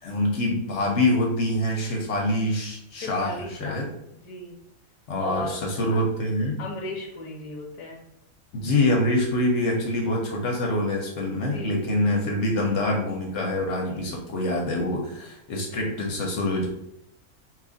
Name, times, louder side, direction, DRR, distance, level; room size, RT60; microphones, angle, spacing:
voice 1, 0.0-3.9 5.1-6.6 8.5-16.7, left 1 dB, 65° left, 0 dB, 0.9 m, -25 dB
voice 2, 3.0-3.8 4.2-4.5 5.1-5.6 6.6-8.0 11.5-12.0 13.8-14.1 15.6-15.9, left 1 dB, 35° left, -2 dB, 0.6 m, -36 dB
3.0 x 2.4 x 3.8 m, 0.80 s
omnidirectional pair, 1.5 m